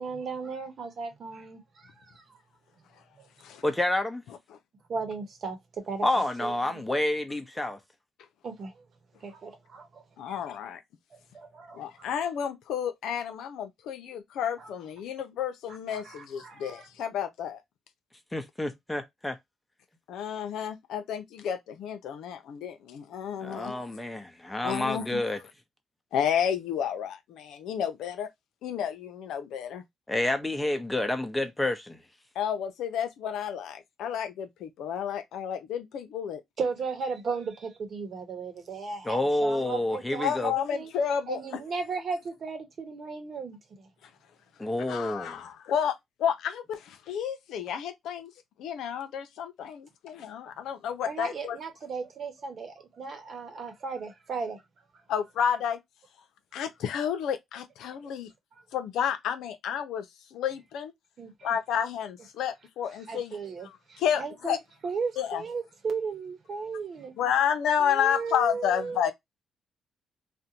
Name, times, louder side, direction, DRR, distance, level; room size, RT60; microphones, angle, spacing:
voice 1, 0.0-2.4 3.2-3.3 4.9-5.6 5.9-6.0 6.4-6.8 8.4-8.7 9.2-10.4 11.1-12.1 14.6-14.7 15.9-16.9 36.6-40.9 41.3-43.9 51.0-54.6 58.0-58.1 61.2-61.3 63.1-64.6 64.8-67.1 67.8-69.0, right 4 dB, 55° right, 1.0 m, -36 dB
voice 2, 3.6-4.2 6.0-7.8 18.3-19.4 23.4-25.4 30.1-32.0 39.0-40.5 44.6-45.4, left 1 dB, 10° left, 0.7 m, -29 dB
voice 3, 10.2-10.8 11.7-17.6 20.1-23.8 24.6-25.2 26.1-28.3 28.6-29.8 32.4-36.4 40.2-41.4 44.9-48.3 48.6-51.6 55.1-55.8 56.5-58.3 58.7-60.9 61.4-63.4 63.6-64.6 65.2-65.4 67.2-69.1, left 8 dB, 80° left, 0.5 m, -31 dB
2.5 x 2.1 x 2.8 m
cardioid pair, 90°, 0 cm